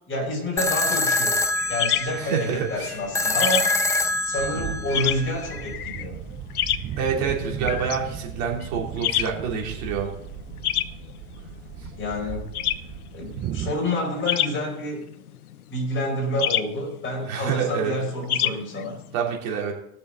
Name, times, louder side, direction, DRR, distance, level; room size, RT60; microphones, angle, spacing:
voice 1, 0.1-3.7 4.2-6.2 12.0-12.5 13.1-15.1 15.7-19.0, left 1 dB, 25° left, -1 dB, 5.3 m, -28 dB
sound 1, 0.6-5.6, left 2 dB, 5° left, 0.6 m, -25 dB
sound 2, 1.6-19.2, left 11 dB, 90° left, 0.7 m, -30 dB
voice 2, 2.1-2.9 7.0-10.1 17.3-17.9 19.1-19.7, right 6 dB, 50° right, -1 dB, 3.2 m, -27 dB
sound 3, 4.4-13.7, right 10 dB, 25° right, 0.7 m, -36 dB
19.5 x 6.9 x 4.0 m, 0.77 s
hypercardioid pair, 105°, 43 cm